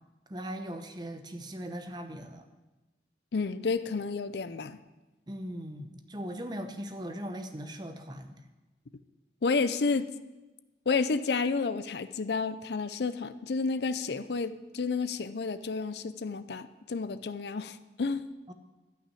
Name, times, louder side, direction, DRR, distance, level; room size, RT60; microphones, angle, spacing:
voice 1, 0.3-2.4 5.3-8.3 18.5-18.6, equal, 25° right, 7 dB, 0.8 m, -39 dB
voice 2, 3.3-4.8 9.4-10.1 10.9-18.3, left 4 dB, 70° left, 13 dB, 0.5 m, -30 dB
13.0 x 5.8 x 8.4 m, 1.1 s
head